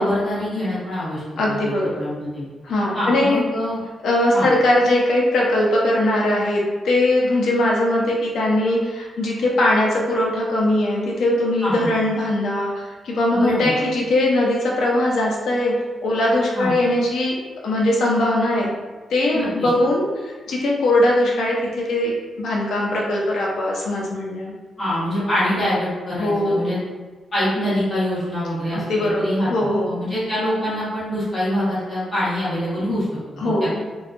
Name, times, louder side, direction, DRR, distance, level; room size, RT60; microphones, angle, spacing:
voice 1, 0.0-1.7 2.0-2.5 2.9-3.8 4.3-4.5 11.6-11.9 13.3-13.7 16.5-16.7 19.3-19.7 24.8-26.8 27.3-29.5 29.8-33.1 33.4-33.7, equal, 25° left, -11 dB, 1.0 m, -24 dB
voice 2, 1.4-2.0 2.6-3.5 4.0-15.7 16.0-17.4 17.6-18.7 19.1-24.5 26.2-26.7 28.7-29.9 33.4-33.8, left 1 dB, 65° left, -2 dB, 0.5 m, -20 dB
2.6 x 2.2 x 2.5 m, 1.3 s
wide cardioid pair, 180°, 0 cm